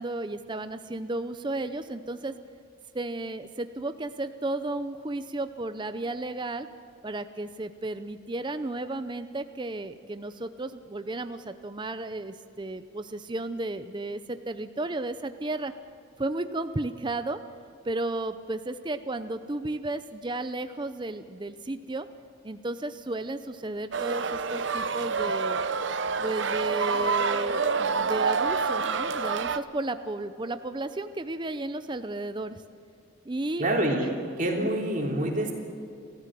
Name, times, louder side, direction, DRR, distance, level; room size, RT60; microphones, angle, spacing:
voice 1, 0.0-2.3 2.9-6.7 7.0-15.7 16.2-17.4 17.8-22.1 22.4-25.6 26.2-32.6 33.3-33.7 34.0-34.1 34.6-34.8, right 2 dB, 25° right, 10 dB, 0.6 m, -33 dB
sound 1, 23.9-29.6, right 5 dB, 70° right, 0.9 m, -27 dB
voice 2, 33.6-34.1 34.4-35.5, right 1 dB, 40° right, 0 dB, 3.5 m, -26 dB
29.5 x 14.5 x 7.6 m, 2.5 s
head